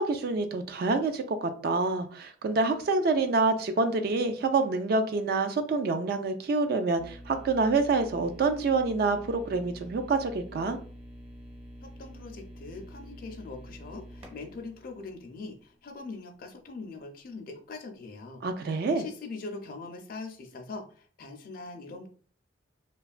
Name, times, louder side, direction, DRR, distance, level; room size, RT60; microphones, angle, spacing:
voice 1, 0.0-10.8 18.4-19.0, right 3 dB, 55° right, 7 dB, 0.3 m, -27 dB
sound 1, 7.0-15.9, equal, 30° right, 0.7 m, -47 dB
voice 2, 11.8-22.1, left 3 dB, 50° left, 4 dB, 0.4 m, -42 dB
2.9 x 2.3 x 2.4 m, 0.43 s
head